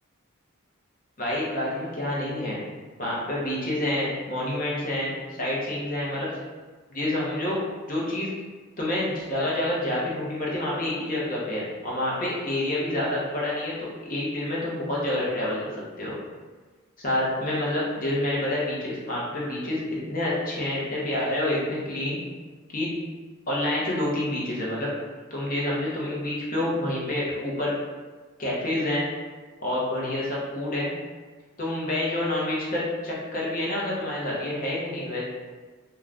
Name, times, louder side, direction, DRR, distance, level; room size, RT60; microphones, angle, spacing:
voice 1, 1.2-2.6 3.0-6.4 6.9-7.6 7.9-8.3 8.8-15.7 16.0-16.2 17.0-22.2 22.7-22.9 23.5-24.9 25.3-27.7 28.4-29.1 29.6-30.9 31.6-35.3, left 1 dB, 40° left, -6 dB, 0.7 m, -28 dB
2.4 x 2.3 x 3.2 m, 1.4 s
head